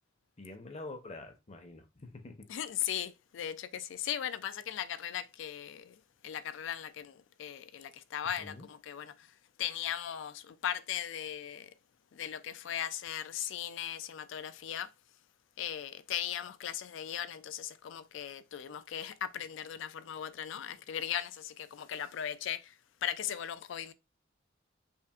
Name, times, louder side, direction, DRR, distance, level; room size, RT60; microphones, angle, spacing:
voice 1, 0.4-2.8 8.4-8.7, left 2 dB, 35° left, 0.7 m, -47 dB
voice 2, 2.5-5.9 6.2-9.1 9.6-11.7 12.1-14.9 15.6-22.6 23.0-23.9, left 10 dB, 65° left, 0.3 m, -38 dB
5.5 x 2.5 x 2.3 m
head